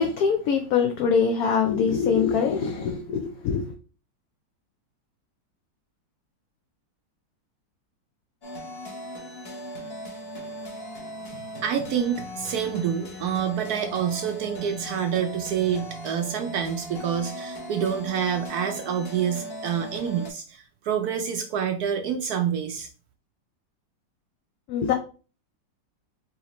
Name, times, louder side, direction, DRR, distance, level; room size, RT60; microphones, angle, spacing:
voice 1, 0.0-3.7 24.7-24.9, left 6 dB, 70° left, 0.9 m, -23 dB
sound 1, 8.4-20.3, equal, 40° left, 1.0 m, -38 dB
voice 2, 11.3-22.9, right 8 dB, 70° right, 1.0 m, -27 dB
4.9 x 2.8 x 3.0 m
omnidirectional pair, 1.9 m